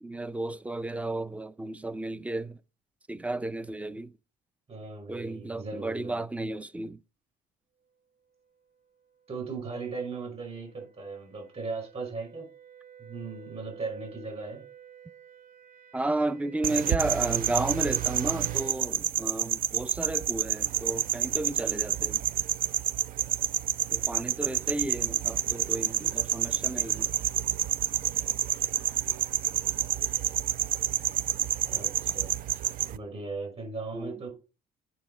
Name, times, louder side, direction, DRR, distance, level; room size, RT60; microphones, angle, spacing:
voice 1, 0.0-2.6 3.1-4.1 5.1-7.0 15.9-22.2 23.9-27.1 33.9-34.1, right 2 dB, 10° right, 0.5 m, -33 dB
voice 2, 4.7-6.2 9.3-12.5 13.0-14.7 31.7-32.6 32.9-34.3, right 4 dB, 35° right, 5.7 m, -38 dB
sound 1, 9.0-18.9, right 9 dB, 90° right, 1.1 m, -51 dB
sound 2, 16.6-33.0, right 12 dB, 55° right, 0.5 m, -29 dB
9.3 x 6.0 x 4.2 m
cardioid pair, 110°, 17 cm